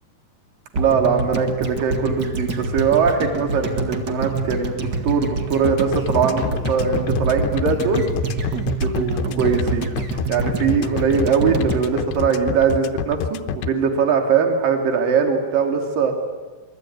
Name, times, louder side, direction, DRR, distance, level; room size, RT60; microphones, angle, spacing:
sound 1, 0.7-13.0 13.2-13.3, right 3 dB, 40° right, 1.5 m, -27 dB
voice 1, 0.7-8.0 8.8-9.9 10.3-16.1, right 6 dB, 60° right, 4 dB, 4.4 m, -21 dB
sound 2, 5.6-13.7, left 7 dB, 85° left, 3.1 m, -27 dB
27.5 x 22.0 x 9.5 m, 1.3 s
omnidirectional pair, 4.7 m